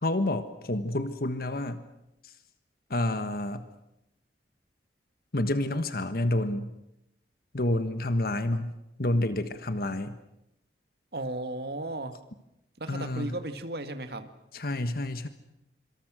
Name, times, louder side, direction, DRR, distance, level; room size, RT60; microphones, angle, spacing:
voice 1, 0.0-1.8 2.2-2.3 2.9-3.7 5.3-6.7 7.5-8.7 9.0-10.2 12.9-13.3 14.5-15.3, left 1 dB, 55° left, 11 dB, 1.4 m, -29 dB
voice 2, 11.1-12.2 12.8-14.3, right 2 dB, 60° right, 9 dB, 1.9 m, -35 dB
26.0 x 25.0 x 6.3 m, 0.84 s
head